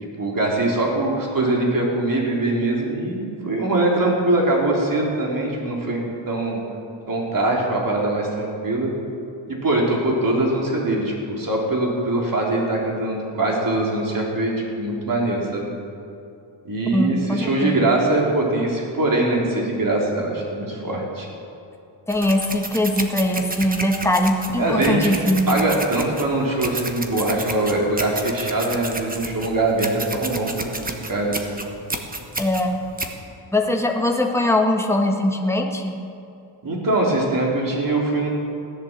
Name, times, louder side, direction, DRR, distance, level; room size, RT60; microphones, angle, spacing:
voice 1, 0.2-6.6 7.1-8.9 9.5-15.7 16.7-21.3 24.6-25.1 25.5-30.5 30.8-31.6 36.6-38.3, right 2 dB, 40° right, -2 dB, 3.4 m, -22 dB
voice 2, 16.9-17.8 22.1-25.5 32.4-32.8 33.5-35.9, left 1 dB, 5° left, 2 dB, 1.4 m, -21 dB
sound 1, 22.1-33.1, right 2 dB, 15° right, 1.2 m, -31 dB
16.5 x 11.0 x 7.3 m, 2.6 s
wide cardioid pair, 145°, 50 cm